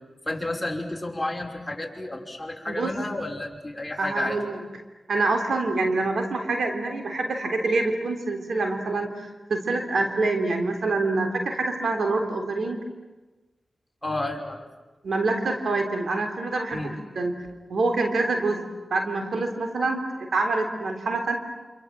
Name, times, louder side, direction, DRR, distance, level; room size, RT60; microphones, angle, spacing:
voice 1, 0.3-4.4 14.0-14.6 16.7-16.9, left 2 dB, 15° left, 0 dB, 5.8 m, -31 dB
voice 2, 4.0-4.6 5.1-12.8 15.0-17.4 17.7-18.6 18.9-21.4, right 3 dB, 75° right, 4 dB, 3.5 m, -26 dB
28.0 x 27.0 x 7.7 m, 1.2 s
cardioid pair, 45°, 0 cm